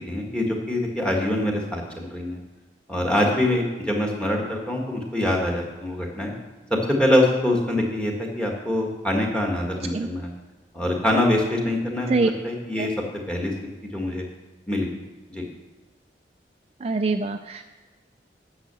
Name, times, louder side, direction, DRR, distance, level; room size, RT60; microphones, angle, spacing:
voice 1, 0.1-2.4 2.9-6.3 6.9-10.3 10.7-12.9 13.3-13.5 13.9-14.2 14.7-14.9 15.3-15.4, left 1 dB, 5° left, 0 dB, 1.7 m, -24 dB
voice 2, 16.8-17.6, right 3 dB, 35° right, 6 dB, 0.4 m, -24 dB
9.9 x 6.5 x 6.9 m, 1.3 s
head